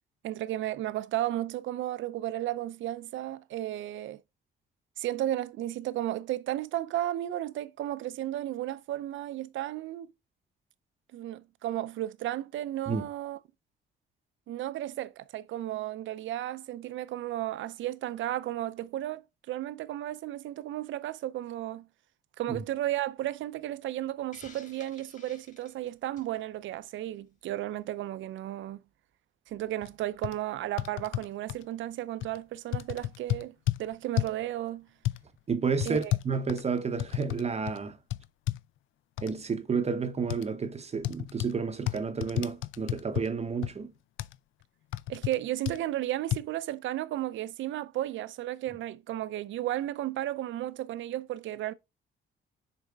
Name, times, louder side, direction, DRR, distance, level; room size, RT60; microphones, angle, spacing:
voice 1, 0.2-4.2 5.0-10.1 11.1-13.4 14.5-19.2 19.5-21.9 22.4-28.8 29.5-33.5 33.8-34.9 35.8-36.1 45.1-51.7, right 13 dB, 75° right, 0.6 m, -34 dB
Hiss, 24.3-26.4, left 4 dB, 40° left, 2.3 m, -53 dB
sound 1, 29.8-29.9 30.2-30.3 30.8-31.6 32.2-32.4 32.7-33.8 34.2-34.4 35.0-35.2 35.8-37.4 37.7-37.8 38.1-38.6 39.2-39.3 40.3-40.5 41.0-41.5 41.9-43.3 43.6-43.7 44.2-44.3 44.9-45.4 45.6-45.8 46.3-46.4, left 15 dB, 80° left, 0.4 m, -31 dB
voice 2, 35.5-38.0 39.2-43.9, right 5 dB, 30° right, 0.7 m, -31 dB
6.7 x 4.3 x 3.5 m
cardioid pair, 90°, 20 cm